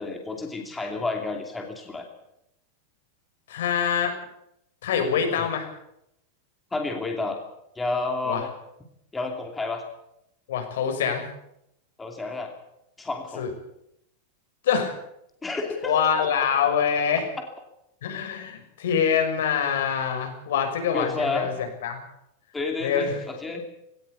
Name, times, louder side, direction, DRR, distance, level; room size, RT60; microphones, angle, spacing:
voice 1, 0.0-2.0 5.4-5.5 6.7-7.4 7.8-8.5 9.1-9.8 12.0-12.5 13.0-13.4 15.4-16.0 20.9-21.5 22.5-23.6, left 3 dB, 10° left, 3 dB, 2.7 m, -30 dB
voice 2, 3.5-4.1 4.8-5.7 8.2-8.4 10.5-11.3 13.4-13.5 14.6-14.9 15.8-17.2 18.0-22.0 22.8-23.1, left 7 dB, 85° left, 5 dB, 6.2 m, -25 dB
18.5 x 18.0 x 8.4 m, 0.79 s
supercardioid pair, 165°, 0 cm